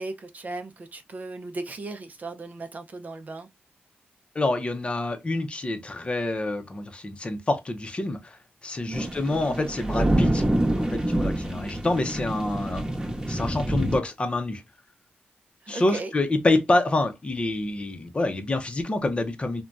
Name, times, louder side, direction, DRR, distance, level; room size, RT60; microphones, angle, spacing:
voice 1, 0.0-3.5 8.9-9.1 11.3-11.6 15.6-16.1, right 2 dB, 45° right, 0.5 m, -37 dB
voice 2, 4.3-14.6 15.7-19.6, left 2 dB, 30° left, 0.6 m, -27 dB
sound 1, 8.9-14.0, right 1 dB, 20° right, 0.9 m, -26 dB
3.2 x 2.2 x 2.5 m
wide cardioid pair, 95°, 4 cm